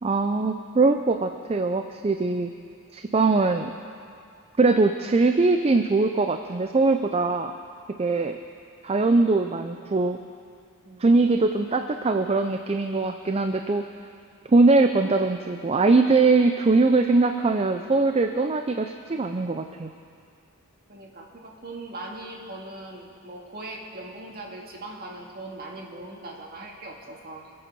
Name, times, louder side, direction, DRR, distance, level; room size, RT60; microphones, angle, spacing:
voice 1, 0.0-2.5 2.9-3.7 4.6-7.5 8.0-8.4 8.8-10.2 11.0-13.8 14.5-19.9, right 3 dB, 30° right, 6 dB, 0.4 m, -21 dB
voice 2, 20.9-27.5, right 2 dB, 45° right, -1 dB, 2.0 m, -40 dB
26.0 x 8.6 x 5.5 m, 2.4 s
head